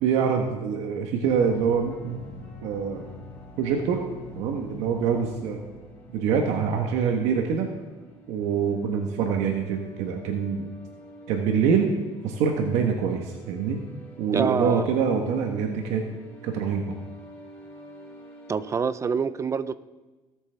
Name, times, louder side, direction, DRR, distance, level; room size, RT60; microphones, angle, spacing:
voice 1, 0.0-2.2 2.6-3.0 3.6-4.0 4.3-5.6 6.1-7.7 8.3-10.7 11.3-11.9 12.2-13.8 14.2-16.1 16.4-16.9, right 6 dB, 90° right, 3 dB, 1.2 m, -25 dB
sound 1, 1.2-18.8, left 1 dB, 20° left, 3.7 m, -46 dB
voice 2, 14.3-14.8 18.5-19.7, right 6 dB, 25° right, 15 dB, 0.5 m, -26 dB
17.0 x 8.2 x 3.4 m, 1.2 s
cardioid pair, 125°, 11 cm